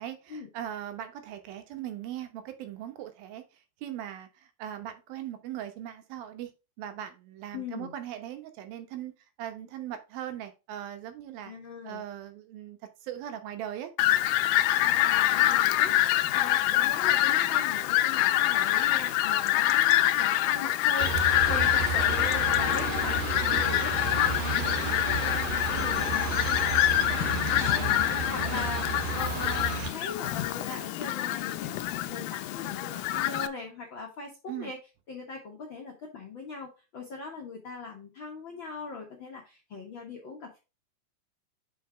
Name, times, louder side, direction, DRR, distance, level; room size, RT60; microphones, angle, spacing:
voice 1, 0.0-3.4 3.8-6.5 6.8-9.1 9.4-11.5 11.8-13.9 34.5-34.7, right 11 dB, 85° right, 8 dB, 2.9 m, -39 dB
voice 2, 7.5-7.9 11.4-12.0 14.8-34.8 35.1-40.6, left 4 dB, 65° left, 0 dB, 1.2 m, -41 dB
Fowl, 14.0-33.5, left 14 dB, 80° left, 2.1 m, -26 dB
sound 1, 21.0-29.9, right 4 dB, 55° right, 2.4 m, -32 dB
5.8 x 5.2 x 4.9 m, 0.29 s
omnidirectional pair, 4.1 m